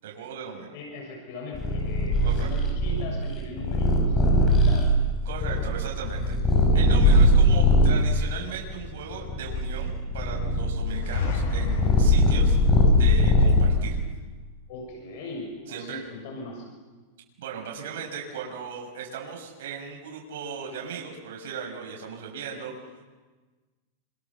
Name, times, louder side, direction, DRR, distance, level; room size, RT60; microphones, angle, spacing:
voice 1, 0.0-0.7 2.2-2.5 5.2-6.4 6.7-12.5 12.9-14.0 15.7-16.0 17.4-22.7, right 6 dB, 75° right, 0 dB, 6.6 m, -37 dB
voice 2, 0.7-5.0 14.7-16.7, left 2 dB, 55° left, 0 dB, 6.9 m, -39 dB
Purr, 1.5-8.1 8.7-14.0, left 1 dB, 20° left, 6.5 m, -21 dB
sound 1, 10.9-12.5, left 4 dB, 70° left, 8.0 m, -30 dB
28.5 x 27.5 x 7.4 m, 1.3 s
supercardioid pair, 155°, 0 cm